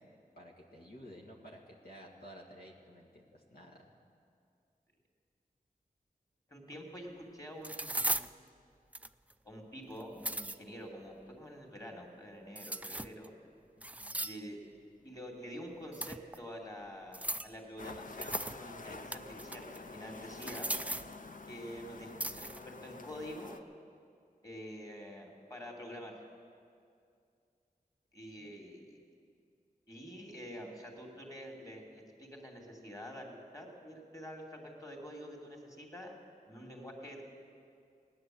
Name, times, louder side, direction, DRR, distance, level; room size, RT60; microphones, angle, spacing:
voice 1, 0.4-3.8 13.8-14.2 28.4-28.5, equal, 80° left, -2 dB, 2.0 m, -53 dB
voice 2, 6.5-8.2 9.4-13.3 14.2-14.7 15.0-20.7 21.5-23.6 24.4-26.1 28.1-29.0 29.9-36.1 36.5-37.2, equal, 20° left, 1 dB, 2.9 m, -47 dB
sound 1, 6.7-6.8 7.6-8.3 8.9-9.3 10.0-10.6 12.6-13.3 13.8-14.5 15.9-16.4 17.1-17.6 18.2-18.6 18.9-19.8 20.3-21.1 22.2-22.6, right 1 dB, 10° right, 0.4 m, -37 dB
sound 2, 17.8-23.6, left 3 dB, 60° left, 0.8 m, -47 dB
17.5 x 9.9 x 7.9 m, 2.3 s
cardioid pair, 50°, 16 cm